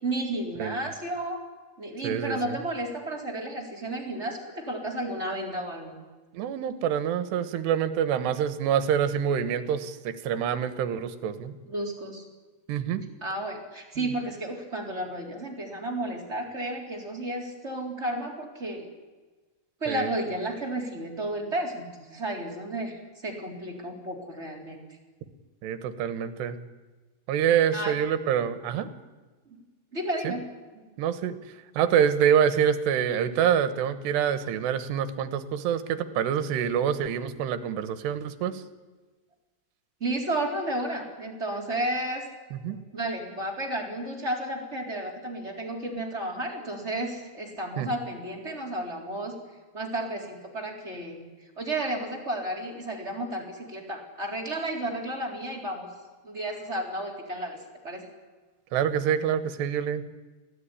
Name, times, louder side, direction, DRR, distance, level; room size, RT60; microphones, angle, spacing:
voice 1, 0.0-1.4 1.8-6.0 11.7-12.2 13.2-18.9 19.8-24.8 27.7-27.9 29.9-30.4 40.0-42.3 42.7-49.3 49.7-51.3 51.6-55.9 56.2-57.6 57.8-58.0, right 1 dB, 15° right, 0 dB, 3.8 m, -32 dB
voice 2, 2.0-2.6 6.3-11.5 12.7-13.0 19.9-20.1 25.6-26.6 27.3-28.9 30.3-30.4 31.0-31.4 31.8-38.6 42.5-42.8 47.8-47.9 58.7-60.1, right 8 dB, 80° right, 12 dB, 3.4 m, -26 dB
24.0 x 16.5 x 10.0 m, 1.3 s
omnidirectional pair, 4.9 m